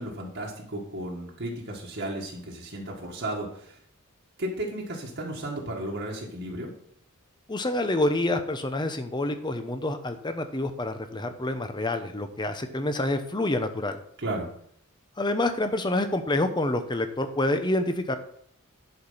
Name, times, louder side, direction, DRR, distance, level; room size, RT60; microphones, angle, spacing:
voice 1, 0.0-3.8 4.4-6.7 14.2-14.5, right 1 dB, 55° right, -2 dB, 1.7 m, -34 dB
voice 2, 7.5-14.0 15.2-18.2, left 1 dB, 20° left, 8 dB, 0.9 m, -27 dB
11.0 x 5.0 x 5.6 m, 0.66 s
head